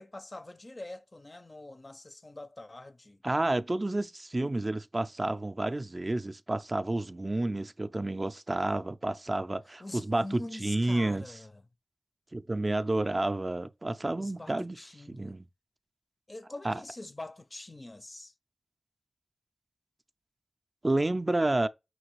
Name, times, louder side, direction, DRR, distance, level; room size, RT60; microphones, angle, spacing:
voice 1, 0.0-3.2 9.8-11.7 14.2-15.4 16.3-18.3, left 2 dB, 35° left, 0.4 m, -44 dB
voice 2, 3.2-11.2 12.3-14.8 15.1-15.4 16.6-16.8 20.8-21.7, right 2 dB, 35° right, 0.3 m, -30 dB
5.9 x 2.4 x 3.0 m
cardioid pair, 50°, 0 cm